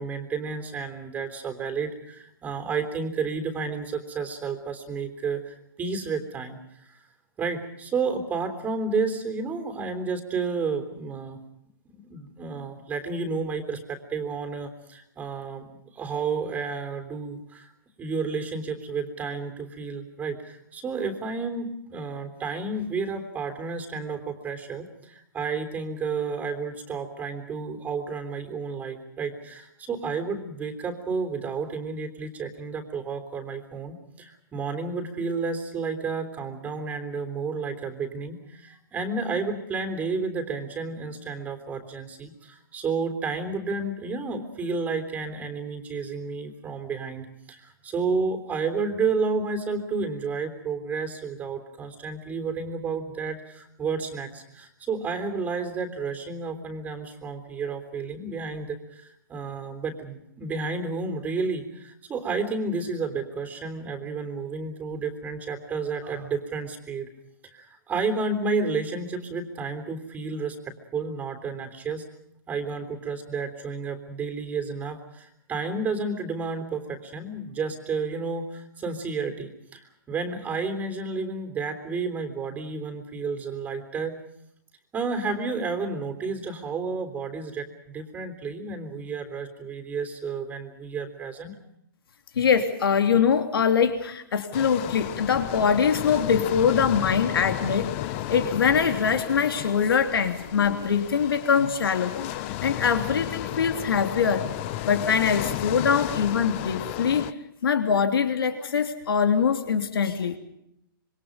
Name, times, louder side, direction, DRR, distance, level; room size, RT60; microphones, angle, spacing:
voice 1, 0.0-7.0 7.4-11.4 11.9-15.7 15.9-17.7 18.0-67.1 67.4-72.0 72.5-84.1 84.9-91.6, right 4 dB, 15° right, 7 dB, 3.5 m, -31 dB
voice 2, 92.3-104.5 104.8-107.3 107.6-110.4, left 6 dB, 80° left, 7 dB, 3.2 m, -23 dB
sound 1, 94.5-107.3, left 14 dB, 35° left, 1.1 m, -33 dB
27.0 x 25.0 x 5.2 m, 0.76 s
hypercardioid pair, 150°, 12 cm